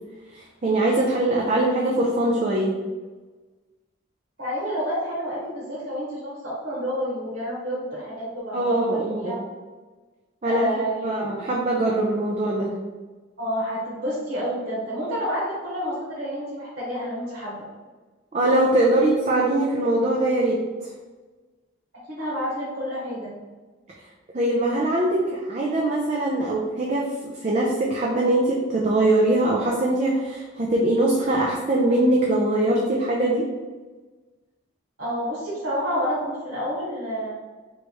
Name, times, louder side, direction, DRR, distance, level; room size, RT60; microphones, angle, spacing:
voice 1, 0.3-2.8 8.5-9.3 10.4-10.7 11.0-12.7 18.3-20.6 24.3-27.1 27.4-33.5, right 1 dB, 35° right, -3 dB, 0.5 m, -22 dB
voice 2, 4.4-9.4 10.4-11.3 13.4-17.6 22.1-23.3 35.0-37.3, equal, 55° right, -9 dB, 1.3 m, -29 dB
3.2 x 3.1 x 4.5 m, 1.3 s
head